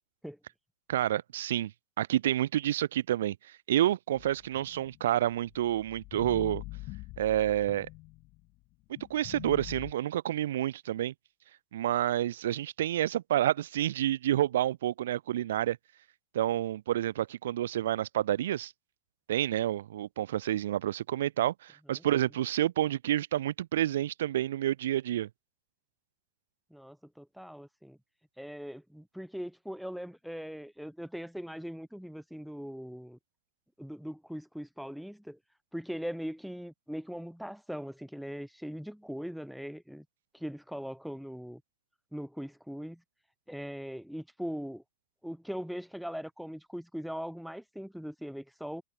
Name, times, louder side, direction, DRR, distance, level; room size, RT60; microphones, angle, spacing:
voice 1, 0.9-1.7 2.0-3.4 3.7-6.6 7.2-7.9 9.1-11.1 11.7-15.8 16.3-18.7 19.3-25.3, right 12 dB, 60° right, 2.7 m, -29 dB
sound 1, 4.2-8.5 9.0-9.9, left 22 dB, 40° left, 5.5 m, -45 dB
voice 2, 26.7-28.0 28.4-33.2 33.8-35.4 35.7-40.1 40.3-41.6 42.1-43.0 43.5-44.8 45.2-48.8, equal, ahead, 3.8 m, -40 dB
figure-of-eight pair, 90°, 0 cm